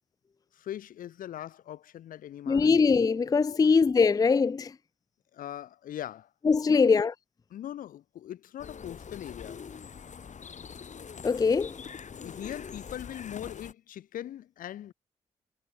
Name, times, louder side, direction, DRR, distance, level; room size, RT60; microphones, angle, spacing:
voice 1, 0.5-2.7 3.5-3.6 5.3-6.3 6.7-6.9 7.5-9.6 12.2-14.9, left 11 dB, 80° left, 1.0 m, -41 dB
voice 2, 2.5-4.7 6.4-7.1 11.2-11.8, left 5 dB, 25° left, 0.4 m, -22 dB
sound 1, 8.6-13.7, left 6 dB, 60° left, 4.1 m, -44 dB
supercardioid pair, 45°, 14 cm